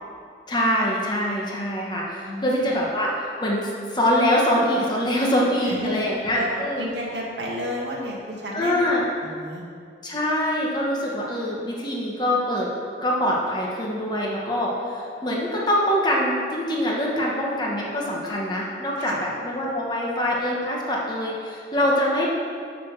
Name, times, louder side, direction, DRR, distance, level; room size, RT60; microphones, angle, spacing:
voice 1, 0.5-6.8 8.5-9.0 10.0-12.7 13.0-22.3, equal, 25° left, -3 dB, 1.3 m, -24 dB
voice 2, 2.2-2.7 5.6-6.0 6.3-8.8 9.2-9.6 19.0-19.2, equal, 75° right, -3 dB, 1.7 m, -31 dB
7.0 x 6.7 x 6.1 m, 2.3 s
head